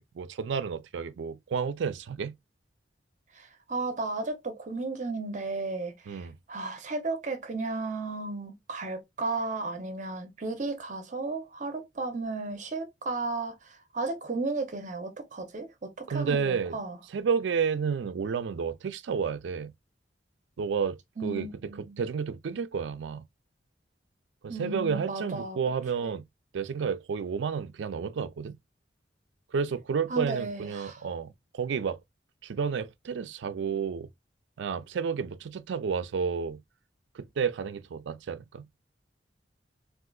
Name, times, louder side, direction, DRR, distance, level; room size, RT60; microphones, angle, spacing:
voice 1, 0.0-2.3 6.1-6.4 16.1-16.8 17.1-19.7 20.6-21.5 21.8-23.3 24.4-26.3 26.5-28.6 29.5-32.0 32.4-34.1 34.6-36.6 37.1-38.7, right 6 dB, 85° right, 0.4 m, -31 dB
voice 2, 3.3-17.0 21.2-22.0 24.5-25.6 26.0-26.1 30.1-31.0, right 3 dB, 45° right, 0.6 m, -34 dB
3.7 x 2.5 x 2.3 m
head